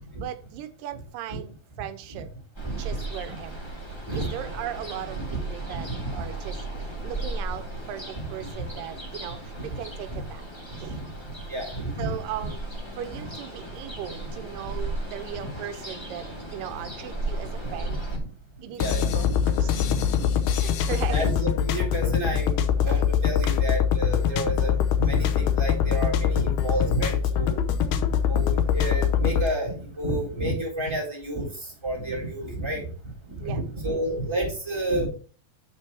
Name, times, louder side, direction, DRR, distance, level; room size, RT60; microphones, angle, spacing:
voice 1, 0.2-2.3 2.8-3.6 4.2-6.6 7.0-10.4 10.8-11.0 12.0-12.6 12.9-18.0 18.6-19.7 20.2-20.3 20.6-21.3 33.4-33.6, right 11 dB, 85° right, 10 dB, 2.3 m, -37 dB
Ocean, 2.5-18.2, right 2 dB, 15° left, 1.0 m, -36 dB
voice 2, 2.6-3.0 4.1-4.3 5.1-5.3 5.7-6.2 8.6-8.7 9.6-9.7 10.1-10.2 10.9-11.1 11.5-12.5 15.4-15.5 17.4-18.2 18.8-20.1 21.1-32.8 33.3-35.1, right 1 dB, 10° right, -4 dB, 3.4 m, -31 dB
sound 1, 18.8-29.5, left 8 dB, 75° left, 2.1 m, -23 dB
7.5 x 6.2 x 4.3 m, 0.38 s
omnidirectional pair, 3.8 m